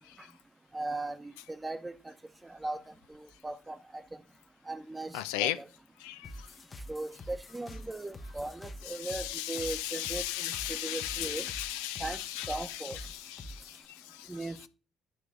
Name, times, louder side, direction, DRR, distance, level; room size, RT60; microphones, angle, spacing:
voice 1, 0.7-2.1 2.4-2.8 3.1-3.8 4.7-5.7 6.9-11.5 12.0-12.2 12.5-13.0 14.3-14.7, right 2 dB, 20° right, 0.9 m, -38 dB
voice 2, 5.1-5.6 6.0-6.5 8.8-14.3, left 14 dB, 80° left, 0.4 m, -36 dB
sound 1, 6.2-13.8, left 1 dB, 40° left, 0.9 m, -47 dB
9.7 x 3.2 x 6.2 m
hypercardioid pair, 50°, 0 cm